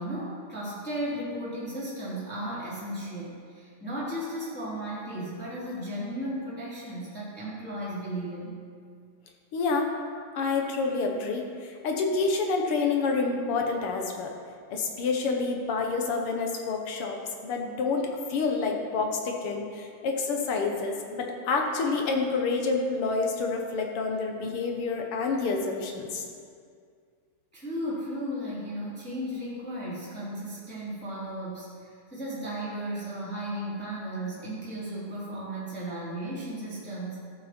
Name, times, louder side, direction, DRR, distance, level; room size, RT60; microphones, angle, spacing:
voice 1, 0.0-8.6 27.5-37.2, right 1 dB, 5° left, -9 dB, 2.9 m, -35 dB
voice 2, 9.5-9.9 10.3-14.3 14.7-26.2, left 4 dB, 60° left, 2 dB, 1.6 m, -28 dB
14.0 x 7.8 x 4.4 m, 2.2 s
omnidirectional pair, 3.4 m